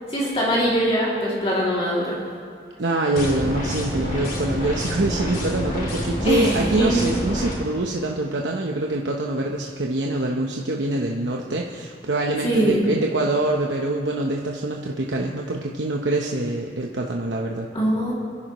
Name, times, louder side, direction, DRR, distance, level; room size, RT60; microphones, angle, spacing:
voice 1, 0.1-2.2 6.2-6.9 12.4-12.9 17.7-18.1, equal, 35° left, -6 dB, 2.6 m, -22 dB
voice 2, 2.8-17.7, right 2 dB, 85° right, 0 dB, 1.0 m, -25 dB
sound 1, 3.2-7.6, equal, 50° left, 3.0 m, -28 dB
29.5 x 11.0 x 3.1 m, 2.2 s
head